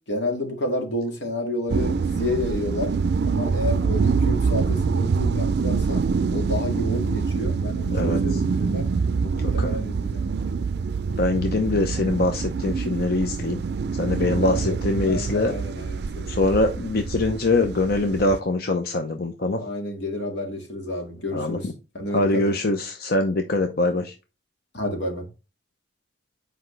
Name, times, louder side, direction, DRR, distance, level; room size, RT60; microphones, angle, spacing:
voice 1, 0.1-3.0 3.2-6.0 6.3-8.9 9.3-10.6 14.3-16.6 19.6-22.5 24.7-25.3, left 1 dB, 80° left, 2.1 m, -30 dB
sound 1, 1.7-18.4, right 5 dB, 65° right, 0.4 m, -25 dB
voice 2, 7.9-8.4 9.4-9.8 11.2-13.6 13.9-15.5 16.3-19.6 21.3-21.7 22.1-24.1, left 2 dB, 60° left, 0.7 m, -23 dB
7.9 x 5.0 x 3.2 m
head